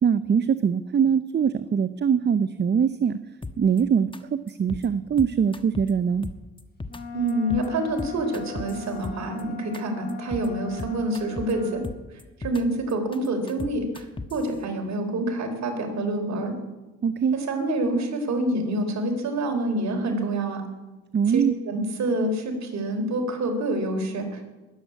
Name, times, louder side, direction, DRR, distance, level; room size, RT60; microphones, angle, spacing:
voice 1, 0.0-3.2 3.6-6.3 17.0-17.4 21.1-21.5, right 7 dB, 35° right, 13 dB, 0.6 m, -22 dB
sound 1, 3.4-3.8 4.1-4.2 4.5-4.9 5.2-5.9 6.2-7.0 7.3-7.7 8.0-9.4 9.7-9.8 10.1-10.5 10.8-11.5 11.8-12.6 12.9-14.4, left 3 dB, 15° left, 1.2 m, -36 dB
Wind instrument woodwind instrument, 6.9-11.8, left 6 dB, 35° left, 4.5 m, -39 dB
voice 2, 7.1-11.8 12.4-16.5 17.3-20.6 21.3-24.3, right 1 dB, 65° right, 4 dB, 3.5 m, -27 dB
20.5 x 8.0 x 8.4 m, 1.1 s
cardioid pair, 90°, 30 cm